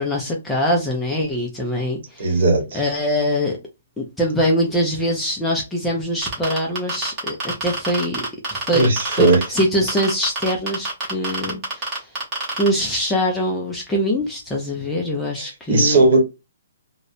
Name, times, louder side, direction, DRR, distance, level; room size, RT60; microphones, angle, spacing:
voice 1, 0.0-2.3 2.7-3.6 4.0-8.2 8.5-8.9 9.2-12.1 12.6-16.1, equal, 5° left, 0.3 m, -23 dB
voice 2, 2.2-2.8 8.7-9.4 15.3-16.2, right 2 dB, 45° right, 0.9 m, -17 dB
sound 1, 6.2-9.6 9.9-12.7, right 2 dB, 20° right, 0.9 m, -26 dB
2.7 x 2.0 x 2.3 m
hypercardioid pair, 175°, 0 cm